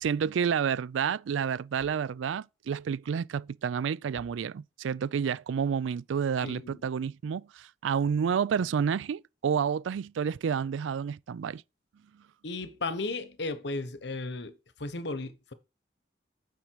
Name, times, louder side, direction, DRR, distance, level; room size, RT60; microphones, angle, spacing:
voice 1, 0.0-11.6, right 7 dB, 90° right, 0.3 m, -30 dB
voice 2, 6.4-6.8 12.4-14.5 14.8-15.5, left 3 dB, 70° left, 1.0 m, -35 dB
9.0 x 5.3 x 4.6 m
head